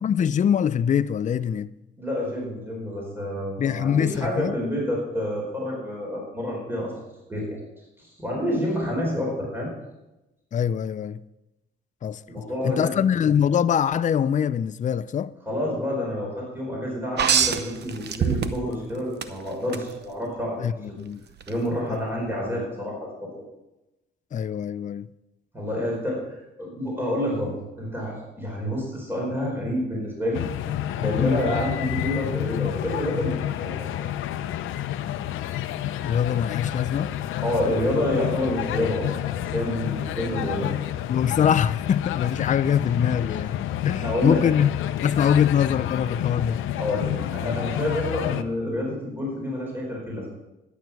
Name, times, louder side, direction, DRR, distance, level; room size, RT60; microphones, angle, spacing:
voice 1, 0.0-1.7 3.6-4.6 10.5-11.2 12.0-15.3 20.6-21.2 24.3-25.1 31.2-31.4 36.0-37.2 41.1-44.7 45.0-46.6, left 8 dB, 40° left, 0.5 m, -23 dB
voice 2, 2.0-6.9 7.3-7.6 8.0-9.7 12.3-13.0 15.5-21.0 21.5-23.3 25.5-30.4 31.0-33.9 37.4-39.1 39.5-40.7 44.0-44.5 46.8-50.3, left 1 dB, 10° right, 4.6 m, -28 dB
sound 1, 17.2-18.8 19.2-19.8 21.4-21.5, right 7 dB, 60° right, 0.9 m, -23 dB
sound 2, 30.3-48.4, left 12 dB, 85° left, 0.7 m, -29 dB
11.5 x 9.3 x 6.0 m
cardioid pair, 90°, 20 cm